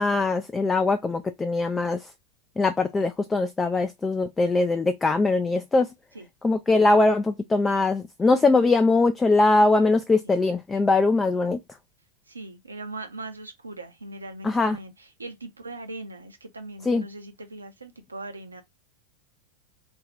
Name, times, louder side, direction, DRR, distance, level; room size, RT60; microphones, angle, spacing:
voice 1, 0.0-2.1 2.6-5.9 6.4-11.6 14.4-14.8 16.8-17.0, left 3 dB, 15° left, 0.3 m, -21 dB
voice 2, 12.3-18.6, right 2 dB, 80° right, 0.6 m, -40 dB
2.5 x 2.3 x 3.3 m
figure-of-eight pair, 90°, 0 cm